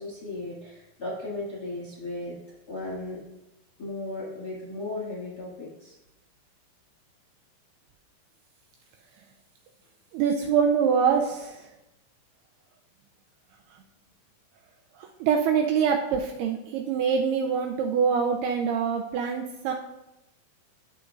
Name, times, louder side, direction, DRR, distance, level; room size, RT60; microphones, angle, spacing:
voice 1, 0.0-2.4 2.7-3.2 3.8-6.0, left 2 dB, 35° left, -5 dB, 1.8 m, -36 dB
voice 2, 10.1-11.7 15.0-19.7, right 6 dB, 80° right, 3 dB, 2.4 m, -24 dB
12.0 x 6.9 x 2.5 m, 0.91 s
omnidirectional pair, 4.9 m